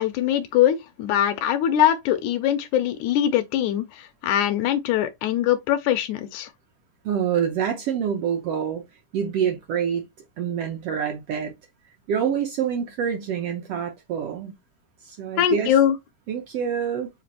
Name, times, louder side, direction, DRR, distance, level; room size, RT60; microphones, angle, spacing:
voice 1, 0.0-6.5 15.4-16.0, left 11 dB, 80° left, 1.9 m, -22 dB
voice 2, 7.0-8.8 9.1-10.0 10.4-11.5 12.1-14.5 15.0-15.7 16.3-17.1, right 8 dB, 90° right, 1.3 m, -26 dB
5.1 x 2.4 x 4.2 m
omnidirectional pair, 3.9 m